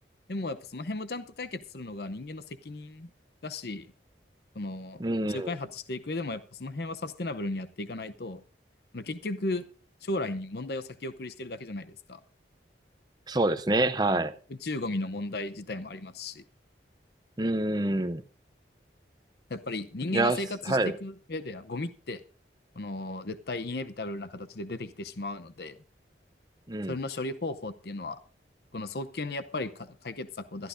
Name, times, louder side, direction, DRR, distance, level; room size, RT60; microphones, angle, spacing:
voice 1, 0.3-3.1 3.4-3.9 4.5-5.0 5.3-8.4 8.9-9.7 10.0-12.2 14.1-14.3 14.6-16.4 19.5-22.2 22.7-25.8 26.9-28.2 28.7-30.7, left 2 dB, 60° left, 0.7 m, -35 dB
voice 2, 5.0-5.5 13.3-14.3 17.4-18.2 20.1-20.4 20.7-20.9 26.7-26.9, right 2 dB, 20° right, 0.7 m, -26 dB
21.5 x 12.0 x 2.6 m
head